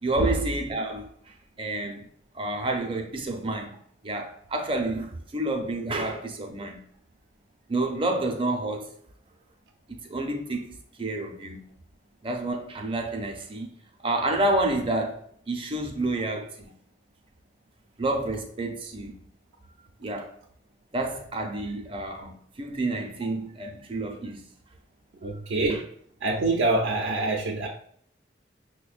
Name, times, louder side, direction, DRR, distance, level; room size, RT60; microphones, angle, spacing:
voice 1, 0.0-2.1 2.3-3.8 4.0-6.8 7.7-8.9 9.9-11.6 12.2-13.7 14.0-16.7 18.0-19.2 20.0-20.3 20.9-24.4 25.7-25.8, right 2 dB, 30° right, 0.5 m, -29 dB
voice 2, 25.2-25.9 26.2-27.7, right 2 dB, 80° right, 0.5 m, -26 dB
6.1 x 2.2 x 2.4 m
head